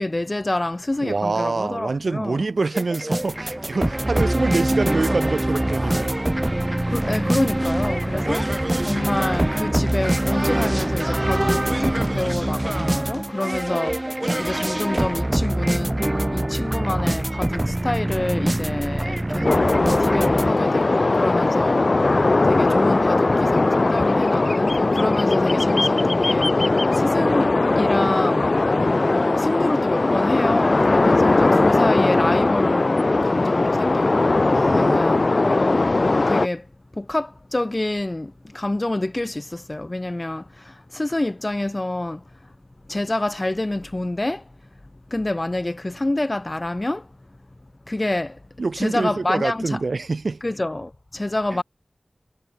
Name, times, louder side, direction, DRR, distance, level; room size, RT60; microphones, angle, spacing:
voice 1, 0.0-2.5 6.9-28.6 29.1-36.0 36.2-42.5 42.8-44.5 45.1-47.1 47.9-48.4 48.8-49.8 50.4-51.6, left 1 dB, 35° left, 4.2 m, -27 dB
voice 2, 1.0-6.2 34.5-35.3 48.6-50.4, right 3 dB, 80° right, 4.0 m, -26 dB
sound 1, 2.7-20.5, right 1 dB, 25° right, 4.2 m, -24 dB
sound 2, 19.4-36.5, left 2 dB, 60° left, 0.4 m, -19 dB
wide cardioid pair, 45°, 0 cm